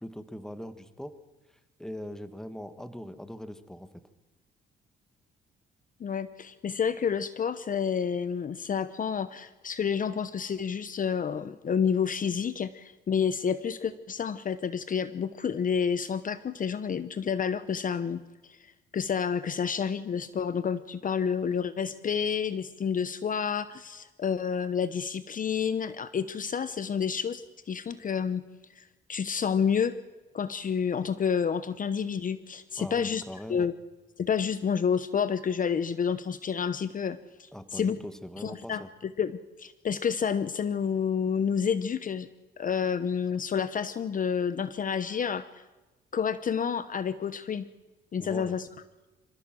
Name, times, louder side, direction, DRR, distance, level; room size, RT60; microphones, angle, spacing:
voice 1, 0.0-1.1 1.8-4.0 32.8-33.7 37.5-38.9 48.2-48.6, equal, 5° left, 11 dB, 1.6 m, -41 dB
voice 2, 6.0-28.4 28.8-30.0 30.3-33.2 33.5-33.7 34.2-38.0 38.4-42.3 42.6-45.6 46.1-47.7 48.1-48.7, left 7 dB, 45° left, 14 dB, 0.9 m, -29 dB
26.0 x 15.0 x 7.6 m, 1.1 s
cardioid pair, 90°, 20 cm